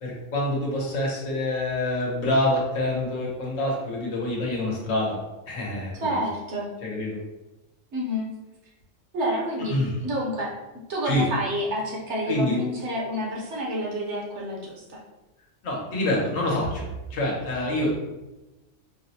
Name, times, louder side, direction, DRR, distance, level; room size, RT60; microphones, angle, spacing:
voice 1, 0.0-5.2 5.5-5.9 6.8-7.2 9.7-9.9 11.0-11.3 12.3-12.6 15.6-17.9, left 1 dB, 85° left, -3 dB, 1.3 m, -26 dB
voice 2, 6.0-6.7 7.9-8.3 9.1-9.8 10.0-10.6 10.9-15.0, equal, 65° right, -2 dB, 1.1 m, -28 dB
4.7 x 2.1 x 2.7 m, 1.0 s
omnidirectional pair, 1.3 m